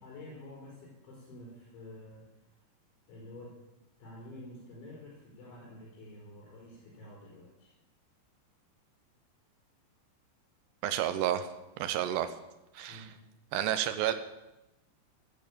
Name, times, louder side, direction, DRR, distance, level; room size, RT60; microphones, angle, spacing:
voice 1, 0.0-2.3 3.1-3.6 4.0-7.7 12.9-13.1, left 1 dB, 75° left, -3 dB, 6.5 m, -49 dB
voice 2, 10.8-11.5 11.8-12.3 12.7-13.0 13.5-14.1, right 11 dB, 75° right, 11 dB, 2.7 m, -30 dB
14.5 x 11.5 x 8.5 m, 0.97 s
omnidirectional pair, 5.4 m